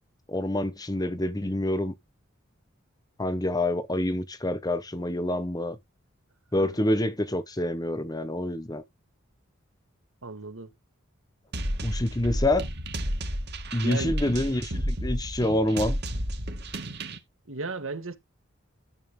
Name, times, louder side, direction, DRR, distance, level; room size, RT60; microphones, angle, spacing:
voice 1, 0.3-1.9 3.2-5.8 6.5-8.8 11.8-12.7 13.7-16.0, left 1 dB, 20° left, 1.0 m, -27 dB
voice 2, 10.2-10.7 13.8-14.1 17.5-18.2, right 3 dB, 80° right, 1.8 m, -35 dB
sound 1, 11.5-17.2, equal, 55° right, 2.0 m, -31 dB
13.0 x 7.0 x 3.7 m
head